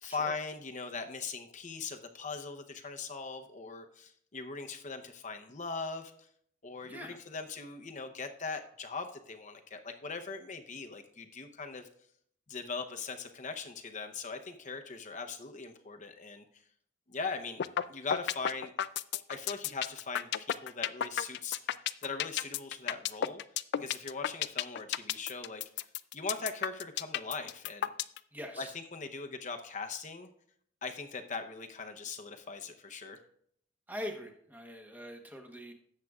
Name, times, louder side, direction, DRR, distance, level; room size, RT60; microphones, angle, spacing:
voice 1, 0.0-6.1 6.6-11.9 12.5-16.4 17.1-17.6 17.9-18.7 19.3-21.7 22.0-23.4 23.8-25.9 26.1-27.9 28.6-30.3 30.8-33.2, left 4 dB, 40° left, 6 dB, 0.8 m, -40 dB
sound 1, 17.6-17.8 18.1-28.2, left 10 dB, 55° left, 0.3 m, -32 dB
voice 2, 28.3-28.7 33.9-35.7, equal, 10° right, 4 dB, 1.0 m, -43 dB
17.0 x 7.4 x 2.4 m, 0.66 s
head